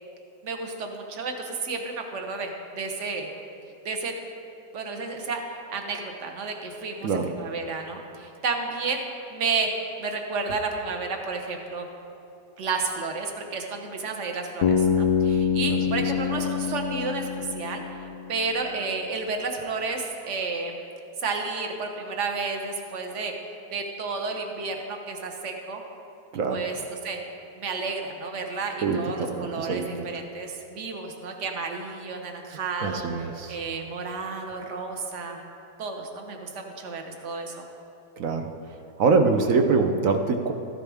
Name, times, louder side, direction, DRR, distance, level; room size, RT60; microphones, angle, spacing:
voice 1, 0.4-3.3 3.8-4.2 4.7-5.4 5.7-9.0 9.3-9.7 10.0-11.9 12.6-17.8 18.3-20.7 21.2-23.3 23.7-25.8 26.5-27.2 27.6-35.4 35.8-37.5, right 4 dB, 50° right, 3 dB, 1.2 m, -31 dB
voice 2, 7.0-7.3 15.7-16.0 26.3-26.6 28.8-30.0 32.8-33.6 38.2-38.5 39.0-40.5, right 4 dB, 65° right, 5 dB, 0.9 m, -24 dB
Bass guitar, 14.6-18.6, left 7 dB, 65° left, 0.9 m, -25 dB
13.5 x 10.5 x 3.5 m, 2.7 s
omnidirectional pair, 1.9 m